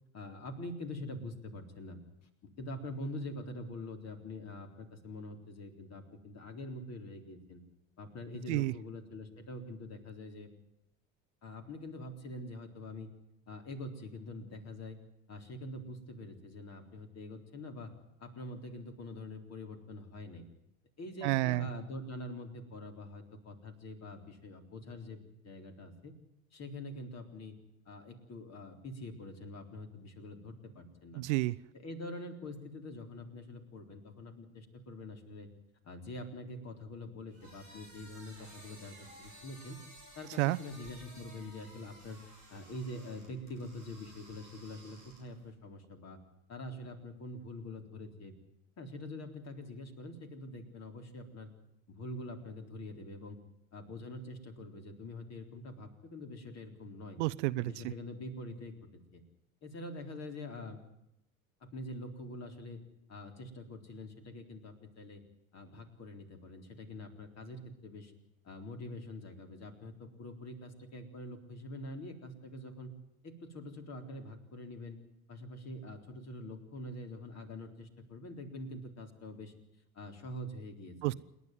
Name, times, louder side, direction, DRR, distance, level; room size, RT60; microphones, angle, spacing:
voice 1, 0.1-2.0 2.4-7.6 8.0-10.5 11.4-13.1 13.5-15.0 15.3-17.9 18.2-20.4 21.0-26.1 26.5-27.6 27.9-31.2 31.7-35.5 35.8-39.8 40.2-42.2 42.5-46.2 46.5-48.3 48.8-51.5 51.9-53.4 53.7-57.2 57.6-58.7 59.1-59.2 59.6-60.8 61.6-62.8 63.1-65.2 65.5-68.1 68.4-72.9 73.2-75.0 75.3-79.5 79.9-81.1, left 1 dB, 40° left, 6 dB, 3.9 m, -45 dB
voice 2, 21.2-21.7 31.1-31.6 40.4-40.6 57.2-57.9 81.0-81.1, right 20 dB, 60° right, 17 dB, 0.7 m, -30 dB
sound 1, 37.3-45.5, right 1 dB, 90° left, 6.1 m, -55 dB
28.0 x 11.0 x 9.3 m, 0.82 s
figure-of-eight pair, 65°, 41 cm